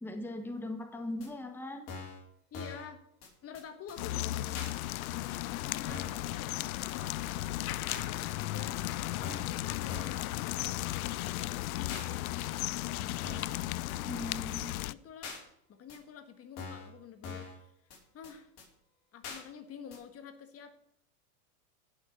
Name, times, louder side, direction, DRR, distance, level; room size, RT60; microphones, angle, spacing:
voice 1, 0.0-1.9 14.1-14.7, left 2 dB, 5° left, 6 dB, 1.4 m, -39 dB
sound 1, 1.2-1.3 1.9-2.2 2.5-2.9 3.2-3.3 3.5-3.6 3.9-4.0 4.5-4.7 5.2-5.3 5.9-6.2 6.5-6.6 6.9-7.0 7.2-7.3 7.9-8.1 8.6-8.7 9.2-9.6 9.9-10.2 10.6-10.7 10.9-11.0 11.2-11.3 11.9-12.1 12.6-12.7 13.2-13.6 13.9-14.0 14.2-14.3 14.6-14.7 15.2-15.4 15.9-16.0 16.6-16.9 17.2-17.6 17.9-18.0 18.2-18.3 18.6-18.7 19.2-19.4 19.9-20.0, left 5 dB, 55° left, 6.0 m, -43 dB
voice 2, 2.5-3.0 3.4-4.7 5.1-8.8 9.2-13.2 13.7-14.3 14.8-15.4 15.7-18.5 19.1-20.7, left 7 dB, 30° left, 9 dB, 1.6 m, -49 dB
sound 2, 4.0-14.9, left 16 dB, 75° left, 0.6 m, -35 dB
16.0 x 6.7 x 6.5 m, 0.72 s
hypercardioid pair, 105°, 43 cm